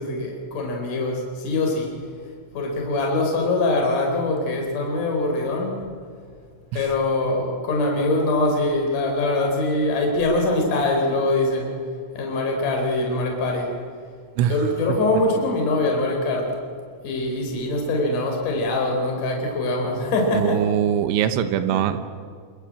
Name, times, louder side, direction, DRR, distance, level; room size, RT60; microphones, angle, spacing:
voice 1, 0.0-1.9 2.5-5.7 6.7-11.8 12.1-13.7 14.5-16.6 17.0-20.6 21.7-21.8, left 2 dB, 45° left, 1 dB, 5.3 m, -23 dB
voice 2, 20.3-22.0, right 10 dB, 80° right, 10 dB, 3.5 m, -22 dB
27.0 x 23.0 x 8.8 m, 2.1 s
omnidirectional pair, 5.5 m